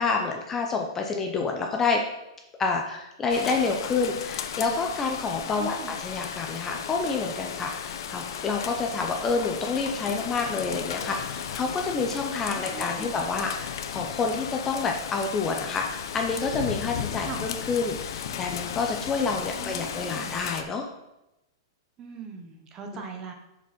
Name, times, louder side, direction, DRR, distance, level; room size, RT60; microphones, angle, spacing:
voice 1, 0.0-2.0 2.6-20.8 22.9-23.0, left 4 dB, 15° left, 2 dB, 0.5 m, -28 dB
Rain, 3.3-20.6, left 8 dB, 60° left, 0.6 m, -35 dB
voice 2, 5.5-5.9 12.5-13.2 17.2-17.4 19.6-20.4 22.0-23.3, right 6 dB, 20° right, 4 dB, 0.9 m, -40 dB
7.2 x 5.1 x 4.2 m, 0.93 s
hypercardioid pair, 165°, 2 cm